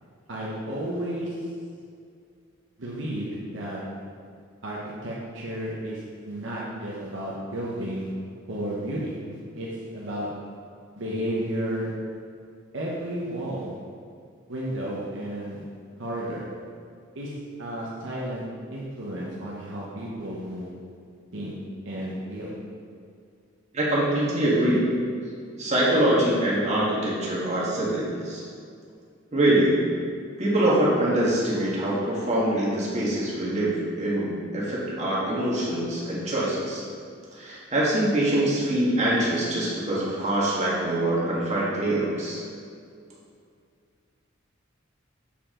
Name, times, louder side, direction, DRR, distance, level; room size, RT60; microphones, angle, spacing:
voice 1, 0.3-1.3 2.8-3.8 4.6-6.0 6.3-8.1 8.5-10.3 11.0-11.9 12.7-13.7 14.5-15.7 16.0-16.4 17.1-17.3 17.6-18.4 18.7-20.7 21.3-21.5 21.8-22.5, right 1 dB, 65° right, -5 dB, 1.0 m, -32 dB
voice 2, 23.7-24.8 25.6-28.4 29.3-29.8 30.4-36.8 37.3-42.4, right 1 dB, 35° right, -6 dB, 1.6 m, -24 dB
7.0 x 4.8 x 3.7 m, 2.3 s
head